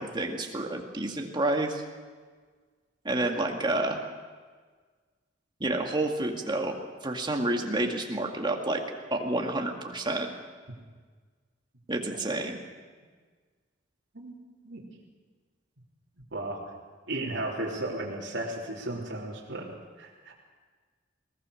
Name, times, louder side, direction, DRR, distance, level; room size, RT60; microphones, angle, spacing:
voice 1, 0.0-1.8 3.0-4.0 5.6-6.8 7.0-8.8 9.1-10.3 11.9-12.6, right 2 dB, 25° right, 2 dB, 2.1 m, -29 dB
voice 2, 17.1-20.3, right 1 dB, 65° right, -5 dB, 3.4 m, -35 dB
20.5 x 19.5 x 6.5 m, 1.5 s
head